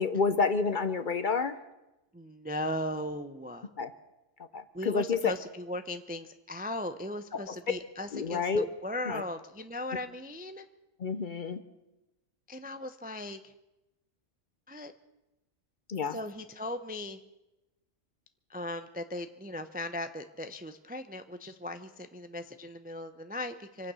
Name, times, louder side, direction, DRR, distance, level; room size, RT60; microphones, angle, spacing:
voice 1, 0.0-1.6 3.8-3.9 4.5-5.3 7.3-7.6 8.1-8.7 9.1-9.2 11.0-11.6 15.9-16.2, left 5 dB, 50° left, 11 dB, 0.7 m, -29 dB
voice 2, 2.1-3.7 4.7-10.6 12.5-13.5 14.7-14.9 16.1-17.2 18.5-23.9, left 1 dB, 10° right, 9 dB, 0.4 m, -38 dB
25.0 x 9.1 x 6.2 m, 0.98 s
omnidirectional pair, 1.3 m